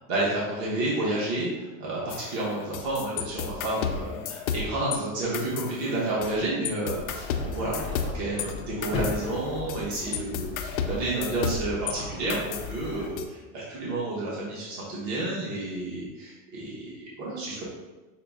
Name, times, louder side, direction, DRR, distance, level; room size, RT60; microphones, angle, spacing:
voice 1, 0.1-7.3 7.5-17.6, right 2 dB, 35° right, -6 dB, 1.0 m, -30 dB
sound 1, 2.1-5.0 5.3-6.4 6.6-11.9 12.3-13.2, left 7 dB, 85° left, 0.6 m, -33 dB
sound 2, 7.1-13.1, left 3 dB, 15° left, 0.4 m, -37 dB
5.7 x 2.1 x 3.4 m, 1.1 s
supercardioid pair, 165°, 41 cm